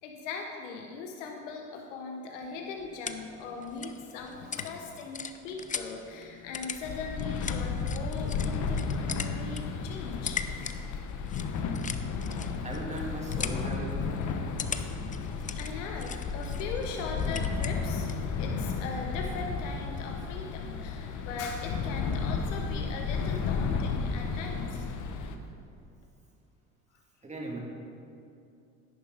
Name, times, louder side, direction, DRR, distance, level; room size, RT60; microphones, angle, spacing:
voice 1, 0.0-10.4 11.3-11.4 14.8-14.9 15.5-18.1 18.4-24.9, left 4 dB, 85° left, 2 dB, 1.0 m, -39 dB
sound 1, 2.4-18.3, left 6 dB, 20° left, 0.6 m, -41 dB
sound 2, 6.8-25.3, left 5 dB, 55° left, 1.1 m, -33 dB
voice 2, 12.6-14.3 27.2-27.6, right 2 dB, 20° right, -1 dB, 2.2 m, -38 dB
10.5 x 9.7 x 3.9 m, 2.7 s
supercardioid pair, 80°, 36 cm